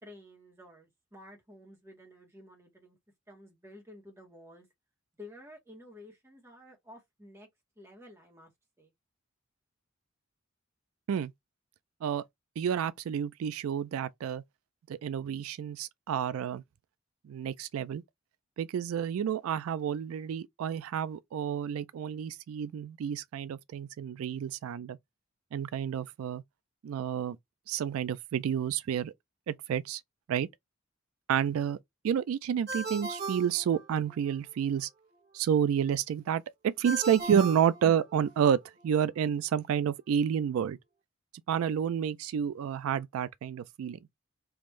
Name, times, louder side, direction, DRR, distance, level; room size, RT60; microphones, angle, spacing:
voice 1, 0.0-3.0 3.3-4.7 5.2-7.5 7.8-8.5 8.8-8.9, left 1 dB, 10° right, 1.1 m, -52 dB
voice 2, 12.6-14.4 14.9-16.6 17.2-18.0 18.6-25.0 25.5-26.4 26.8-27.4 27.7-29.1 29.5-30.0 30.3-30.5 31.3-31.8 32.0-34.9 35.3-40.8 41.5-44.0, right 8 dB, 80° right, 0.3 m, -30 dB
Ringtone, 32.7-34.3 36.8-38.5, right 3 dB, 45° right, 1.2 m, -38 dB
3.5 x 2.5 x 3.1 m
head